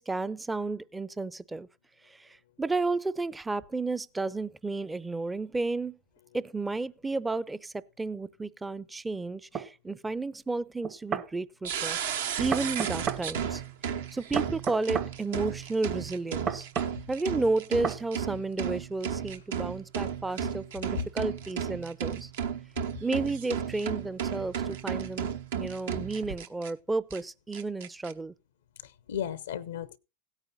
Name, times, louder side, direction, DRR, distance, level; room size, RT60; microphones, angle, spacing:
voice 1, 0.0-1.7 2.2-2.3 2.6-6.0 6.3-13.6 14.1-16.7 17.1-22.3 23.0-28.3, right 3 dB, 10° right, 0.5 m, -32 dB
sound 1, 9.5-9.7 10.8-11.3 12.5-13.2 14.4-15.1 16.5-16.9 17.8-18.0, right 7 dB, 30° right, 0.8 m, -31 dB
sound 2, 11.6-26.7 27.1-27.2 27.5-28.1, right 8 dB, 70° right, 1.0 m, -34 dB
voice 2, 28.8-30.0, left 9 dB, 80° left, 0.5 m, -35 dB
16.5 x 9.0 x 2.6 m
hypercardioid pair, 105°, 0 cm